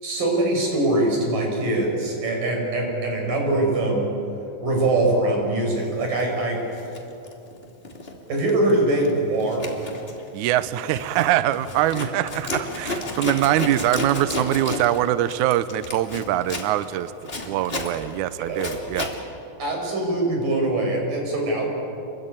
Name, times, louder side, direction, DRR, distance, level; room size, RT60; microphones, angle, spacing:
voice 1, 0.0-4.1 4.6-6.6 8.3-9.6 18.4-18.6 19.6-21.7, right 2 dB, 60° right, 1 dB, 7.1 m, -23 dB
Zipper (clothing), 6.0-6.2 6.7-8.1 8.4-8.7 9.0-19.2, left 2 dB, 20° left, 2.3 m, -32 dB
voice 2, 10.3-17.1 17.4-19.1, right 13 dB, 80° right, 14 dB, 1.8 m, -23 dB
28.0 x 22.5 x 8.9 m, 2.9 s
omnidirectional pair, 4.3 m